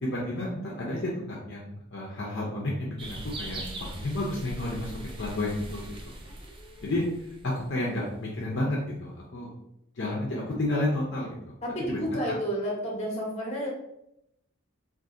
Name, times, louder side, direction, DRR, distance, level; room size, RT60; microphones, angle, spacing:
voice 1, 0.0-6.2 6.8-9.5 10.0-11.5 11.9-12.2, left 1 dB, 55° left, -3 dB, 0.6 m, -31 dB
sound 1, 3.0-8.0, right 1 dB, 25° right, 0.4 m, -41 dB
voice 2, 6.2-6.9 11.6-13.7, equal, 30° left, -2 dB, 0.9 m, -32 dB
2.6 x 2.5 x 3.6 m, 0.80 s
head